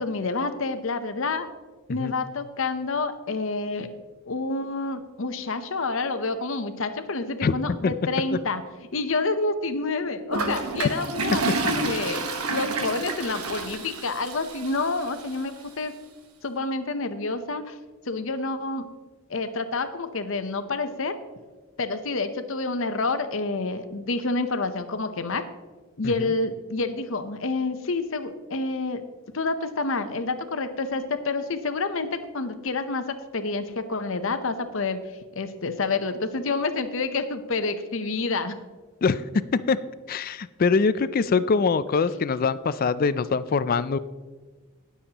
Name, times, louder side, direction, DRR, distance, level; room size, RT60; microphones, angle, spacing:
voice 1, 0.0-1.5 1.9-3.9 4.3-8.6 8.9-15.9 16.4-17.7 18.1-18.9 19.3-21.1 21.8-25.4 26.0-29.0 29.3-35.0 35.3-38.6, left 3 dB, 60° left, 9 dB, 0.8 m, -28 dB
Toilet flush, 10.3-15.4, right 3 dB, 85° right, 1.3 m, -29 dB
voice 2, 40.1-44.0, left 4 dB, 40° left, 15 dB, 0.3 m, -23 dB
19.5 x 7.1 x 2.9 m, 1.4 s
head